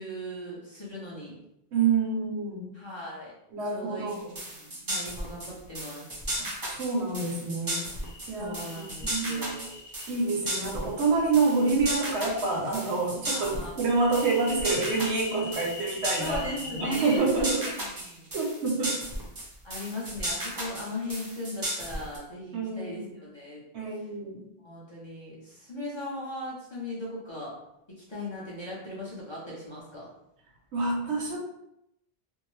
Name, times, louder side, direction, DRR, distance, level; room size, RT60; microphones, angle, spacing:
voice 1, 0.0-1.3 2.7-3.3 3.6-6.1 8.3-9.7 13.3-13.9 16.2-18.3 19.6-23.6 24.6-27.5 27.9-30.1, left 1 dB, 30° left, -7 dB, 0.6 m, -38 dB
voice 2, 1.7-2.6 3.5-4.4 6.7-7.8 8.3-9.5 10.1-16.4 16.7-17.6 18.3-19.0 22.5-23.1 23.7-24.4 30.7-31.4, right 4 dB, 85° right, -1 dB, 1.0 m, -27 dB
sound 1, 4.1-22.2, right 1 dB, 25° right, 0.5 m, -35 dB
sound 2, 8.0-10.1 11.0-12.6 13.8-17.2, left 4 dB, 80° left, 0.9 m, -43 dB
2.6 x 2.1 x 3.0 m, 0.81 s
omnidirectional pair, 1.1 m